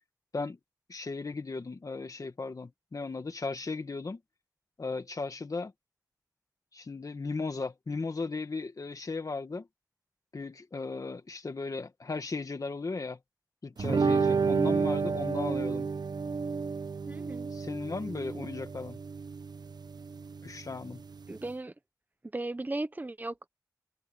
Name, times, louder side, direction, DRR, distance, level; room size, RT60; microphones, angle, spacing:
voice 1, 0.9-4.2 4.8-5.7 6.7-9.7 10.3-13.2 13.6-15.9 17.5-19.0 20.4-21.0, left 3 dB, 55° left, 1.8 m, -36 dB
sound 1, 13.8-21.5, right 5 dB, 85° right, 0.9 m, -31 dB
voice 2, 17.1-17.5 21.3-21.7 22.3-23.5, right 2 dB, 25° right, 1.0 m, -36 dB
wide cardioid pair, 75°, 7 cm